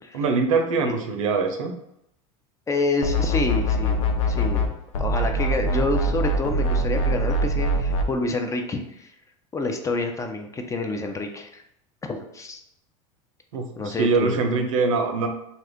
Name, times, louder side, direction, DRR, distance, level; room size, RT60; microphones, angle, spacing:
voice 1, 0.1-1.8 13.5-15.3, right 4 dB, 90° right, 4 dB, 0.6 m, -23 dB
voice 2, 2.7-4.0 4.3-9.1 9.5-11.6 12.0-12.6 13.8-14.4, left 2 dB, 20° left, 4 dB, 0.4 m, -28 dB
sound 1, 3.0-4.7 4.9-8.1, equal, 85° left, 0.5 m, -23 dB
2.8 x 2.4 x 3.4 m, 0.79 s
supercardioid pair, 100°, 17 cm